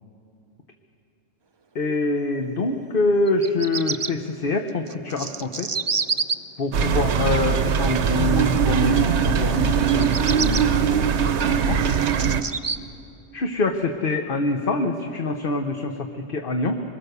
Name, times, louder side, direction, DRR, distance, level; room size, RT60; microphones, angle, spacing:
voice 1, 1.7-5.7 6.6-11.0 11.5-11.8 13.3-16.8, left 2 dB, 45° left, 4 dB, 1.1 m, -25 dB
Bird vocalization bird call bird song, 3.3-4.1 4.9-6.3 9.9-10.6 11.3-12.8, right 5 dB, 40° right, 0.4 m, -27 dB
sound 1, 6.7-12.4, right 7 dB, 65° right, 1.1 m, -21 dB
23.5 x 21.5 x 6.8 m, 2.6 s
omnidirectional pair, 1.3 m